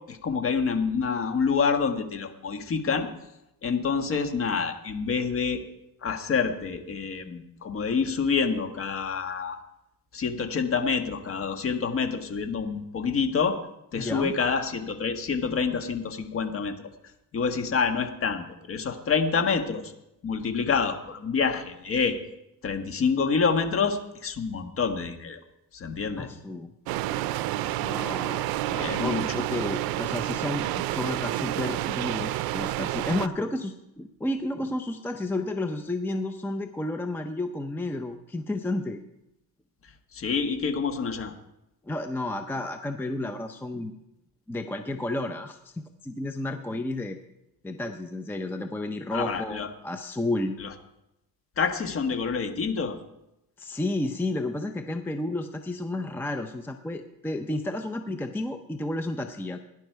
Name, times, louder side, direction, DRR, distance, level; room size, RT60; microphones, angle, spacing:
voice 1, 0.1-3.1 3.6-5.6 6.0-9.6 10.1-13.6 13.9-16.7 17.3-19.9 20.2-22.2 22.6-25.4 25.7-26.3 28.8-29.2 40.1-41.3 49.1-49.7 50.6-50.7 51.6-53.0, left 5 dB, 35° left, 7 dB, 1.5 m, -27 dB
voice 2, 14.0-14.3 26.2-26.7 27.8-28.4 28.7-39.0 41.9-43.9 44.5-45.7 46.0-47.2 47.6-50.6 53.6-59.6, left 2 dB, 5° left, 7 dB, 0.6 m, -31 dB
sound 1, 26.9-33.3, right 15 dB, 75° right, 0.6 m, -29 dB
17.0 x 10.5 x 4.6 m, 0.88 s
cardioid pair, 130°, 36 cm